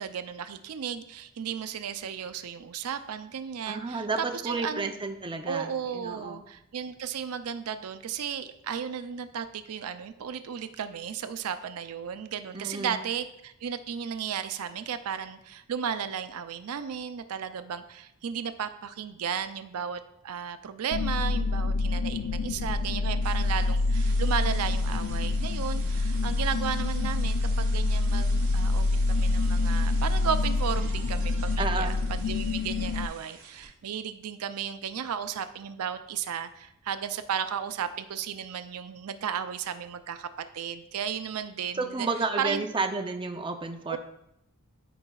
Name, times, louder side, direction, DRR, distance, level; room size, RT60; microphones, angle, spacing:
voice 1, 0.0-4.1 4.3-4.9 5.5-40.3 40.5-42.1 42.4-42.6 43.9-44.0, right 7 dB, 80° right, 10 dB, 0.4 m, -34 dB
voice 2, 3.7-6.4 12.5-13.0 31.6-31.9 41.7-44.0, right 3 dB, 25° right, 4 dB, 0.5 m, -31 dB
sound 1, 20.9-33.1, left 2 dB, 80° left, 0.3 m, -26 dB
sound 2, 23.2-33.7, right 5 dB, 60° right, 1.5 m, -48 dB
13.0 x 4.8 x 2.3 m, 0.79 s
head